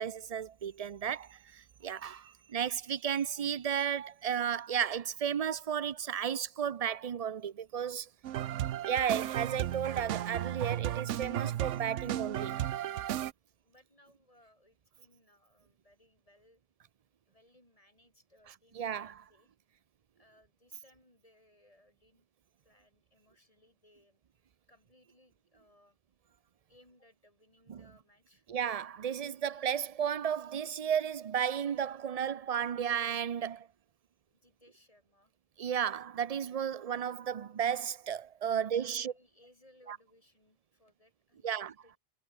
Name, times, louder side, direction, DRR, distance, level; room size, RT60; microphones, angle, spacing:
voice 1, 0.0-8.1 8.9-12.6 18.8-19.2 27.7-27.8 28.5-33.7 35.6-39.1 39.9-40.0 41.4-41.7, right 8 dB, 45° right, 0.5 m, -33 dB
sound 1, 8.2-13.3, right 12 dB, 80° right, 1.0 m, -34 dB
voice 2, 13.6-16.6 17.0-19.5 20.2-22.3 22.6-24.2 24.7-26.0 26.2-26.4 26.7-28.5 34.3-35.3 38.4-42.0, left 1 dB, 30° left, 6.8 m, -65 dB
omnidirectional pair, 1.2 m